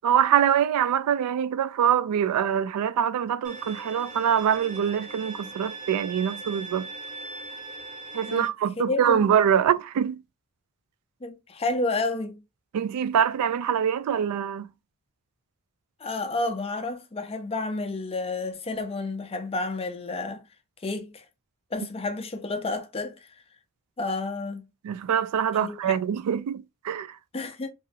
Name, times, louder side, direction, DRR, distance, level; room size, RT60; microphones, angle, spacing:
voice 1, 0.0-6.9 8.1-10.2 12.7-14.7 24.8-27.2, right 9 dB, 90° right, 0.3 m, -24 dB
Bowed string instrument, 3.4-8.5, right 3 dB, 35° right, 0.6 m, -40 dB
voice 2, 8.8-9.2 11.2-12.4 16.0-20.4 20.8-21.2 21.7-23.1 24.0-24.6 25.6-26.0 27.3-27.7, left 3 dB, 25° left, 0.5 m, -30 dB
3.0 x 2.6 x 2.6 m
head